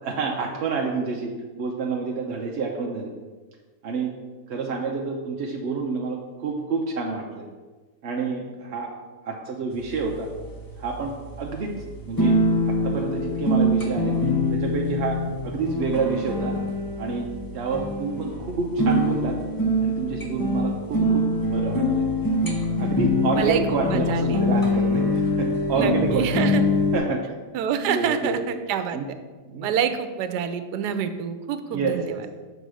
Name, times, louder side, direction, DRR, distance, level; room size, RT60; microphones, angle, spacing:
voice 1, 0.0-1.3 1.6-3.1 3.8-4.1 4.5-7.4 8.0-8.9 9.2-10.3 10.8-12.3 12.7-14.2 14.5-15.2 15.4-16.6 17.0-17.3 17.5-19.3 19.8-22.0 22.8-26.6 26.9-27.2 27.9-28.4 28.9-29.1 29.5-29.8 31.7-32.2, right 4 dB, 55° right, 0 dB, 0.7 m, -28 dB
sound 1, 9.7-27.0, left 1 dB, 25° left, 0.5 m, -24 dB
voice 2, 23.4-24.4 25.7-26.6 27.5-29.0 29.6-32.2, right 8 dB, 85° right, 9 dB, 1.2 m, -27 dB
6.7 x 4.0 x 6.2 m, 1.3 s
omnidirectional pair, 1.7 m